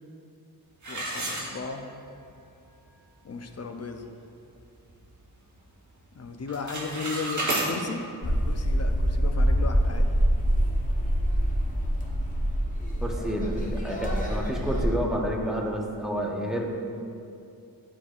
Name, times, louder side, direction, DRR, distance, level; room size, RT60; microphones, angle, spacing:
sound 1, 0.8-2.1 2.5-2.6 3.2-3.3 3.7-4.0 4.4-5.5 5.8-6.2 6.4-7.7, right 1 dB, 45° right, 1.2 m, -32 dB
voice 1, 0.9-1.9 3.2-4.1 6.1-10.1, left 4 dB, 40° left, 4 dB, 0.5 m, -35 dB
sound 2, 8.2-14.9, equal, 20° left, 1.1 m, -25 dB
voice 2, 13.0-16.7, equal, ahead, -1 dB, 0.8 m, -29 dB
11.5 x 4.7 x 2.4 m, 2.6 s
wide cardioid pair, 90°, 39 cm